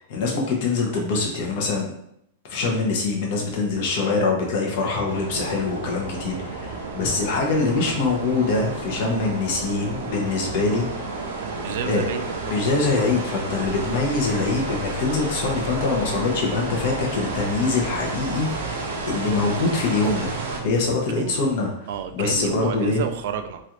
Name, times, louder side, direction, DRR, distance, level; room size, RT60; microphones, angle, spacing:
voice 1, 0.1-1.9 2.5-10.9 11.8-12.0 12.5-20.3 20.6-21.7 22.1-23.0, left 3 dB, 45° left, 0 dB, 0.8 m, -24 dB
sound 1, 5.0-20.6, right 3 dB, 80° right, 0.7 m, -31 dB
voice 2, 11.6-12.6 21.2-21.5 21.9-23.6, right 8 dB, 55° right, 8 dB, 0.3 m, -30 dB
sound 2, 13.6-20.8, equal, 5° left, 0.7 m, -38 dB
3.1 x 2.5 x 2.8 m, 0.75 s
supercardioid pair, 170°, 0 cm